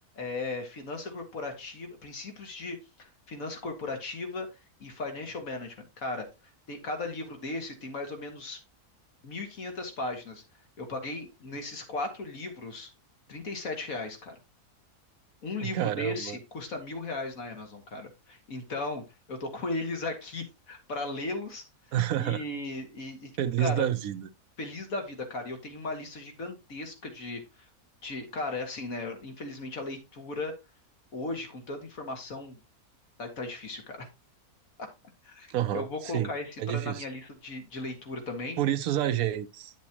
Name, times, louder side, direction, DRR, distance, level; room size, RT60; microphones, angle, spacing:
voice 1, 0.2-4.5 4.8-6.3 6.7-8.6 9.2-10.4 10.8-12.9 13.3-14.4 15.4-21.6 22.2-23.3 23.6-23.9 24.6-27.7 28.0-30.5 31.1-32.6 33.2-34.1 34.8-34.9 35.2-38.6, left 2 dB, 65° left, 2.1 m, -36 dB
voice 2, 15.6-16.4 21.9-22.4 23.4-24.3 35.5-36.3 36.6-37.0 38.6-39.7, right 12 dB, 70° right, 1.2 m, -29 dB
9.6 x 7.2 x 2.9 m
omnidirectional pair, 1.6 m